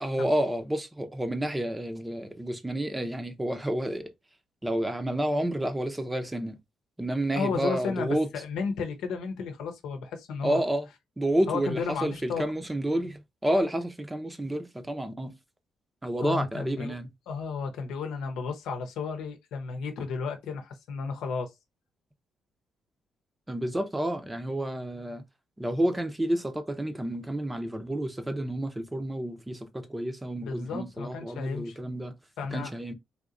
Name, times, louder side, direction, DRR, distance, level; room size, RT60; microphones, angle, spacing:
voice 1, 0.0-4.1 4.6-6.6 7.0-8.3 10.4-10.9 11.2-15.3 16.0-17.1 23.5-25.2 25.6-32.1 32.5-32.9, right 1 dB, 15° right, 0.6 m, -30 dB
voice 2, 7.3-10.6 11.5-12.4 16.2-17.0 17.3-21.5 30.4-31.8 32.4-32.7, left 5 dB, 85° left, 0.8 m, -33 dB
3.6 x 2.7 x 2.4 m
cardioid pair, 90°, 0 cm